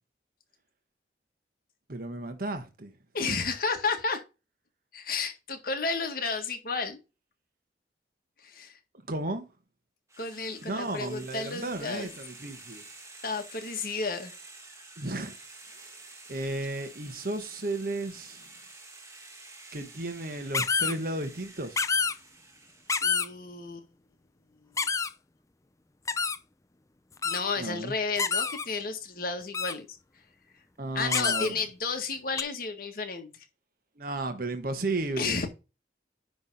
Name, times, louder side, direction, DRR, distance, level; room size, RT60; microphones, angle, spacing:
voice 1, 1.9-2.9 3.2-3.4 9.1-9.5 10.6-12.8 15.0-15.3 15.7-16.0 16.3-18.5 19.7-21.8 27.6-27.9 30.8-31.5 34.0-35.4, right 2 dB, 55° right, 1.2 m, -34 dB
voice 2, 3.1-4.2 4.9-7.0 8.4-8.8 10.2-12.1 13.2-14.3 23.0-23.9 24.8-24.9 27.2-30.0 30.9-33.4 35.2-35.5, left 4 dB, 55° left, 1.6 m, -32 dB
sound 1, 10.1-23.2, right 3 dB, 15° right, 1.9 m, -50 dB
sound 2, 20.5-20.9 21.8-22.1 22.9-23.3 24.8-25.1 26.1-26.4 27.2-27.4 28.2-28.7 29.5-29.7 31.1-31.5 32.4-32.5, left 5 dB, 20° left, 0.5 m, -27 dB
10.0 x 3.4 x 5.4 m
head